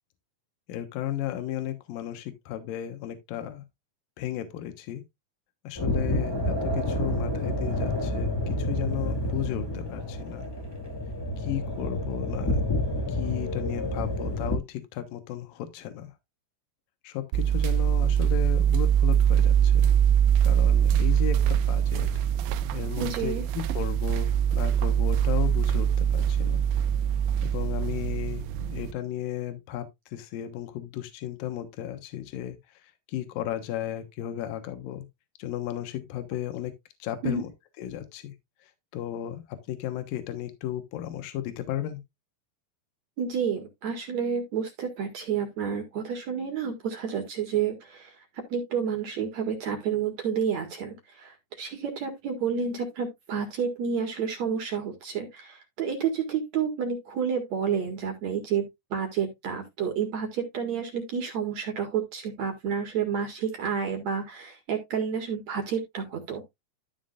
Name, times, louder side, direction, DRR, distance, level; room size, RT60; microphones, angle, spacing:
voice 1, 0.7-3.6 4.2-5.0 5.6-10.5 11.4-12.6 13.1-16.1 17.0-19.9 20.4-22.1 22.7-26.6 27.4-29.8 30.1-32.6 33.1-35.1 35.4-36.7 37.0-37.5 37.8-38.3 38.9-42.0, left 11 dB, 75° left, 2.9 m, -34 dB
sound 1, 5.8-14.6, left 1 dB, 20° left, 0.7 m, -29 dB
sound 2, 17.3-28.9, right 9 dB, 85° right, 2.5 m, -23 dB
voice 2, 23.0-23.4 37.2-37.5 43.2-48.1 48.5-58.7 58.9-66.4, right 7 dB, 55° right, 2.7 m, -30 dB
13.0 x 6.1 x 2.5 m
omnidirectional pair, 4.3 m